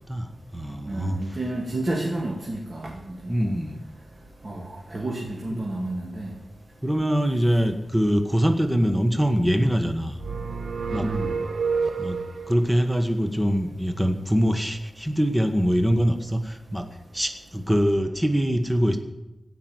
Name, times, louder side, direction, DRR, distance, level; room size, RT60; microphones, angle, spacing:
voice 1, 0.1-1.4 3.3-3.8 5.5-5.6 6.8-10.2 10.9-11.1 12.0-12.2 12.5-19.0, equal, 5° right, 6 dB, 1.3 m, -23 dB
voice 2, 0.9-2.9 3.2-3.3 4.4-4.6 4.9-6.3 11.0-11.3, right 2 dB, 45° right, -1 dB, 2.3 m, -30 dB
sound 1, 10.2-12.6, right 5 dB, 75° right, 0.9 m, -28 dB
17.0 x 6.0 x 9.5 m, 0.92 s
wide cardioid pair, 80°, 0 cm